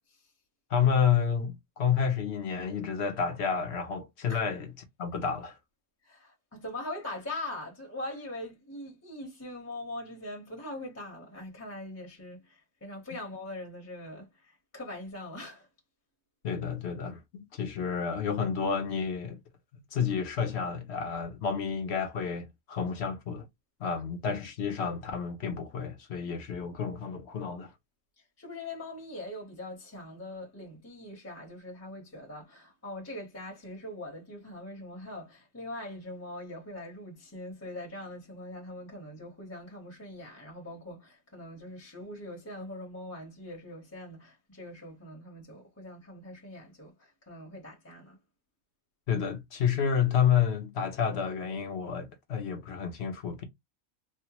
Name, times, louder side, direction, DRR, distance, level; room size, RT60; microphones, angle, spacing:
voice 1, 0.7-4.7 5.0-5.6 16.4-19.4 19.9-23.5 23.8-27.7 49.1-53.4, left 7 dB, 60° left, 0.9 m, -30 dB
voice 2, 6.0-15.7 28.4-48.2, left 1 dB, 15° left, 0.8 m, -42 dB
3.2 x 2.1 x 2.9 m
omnidirectional pair, 1.4 m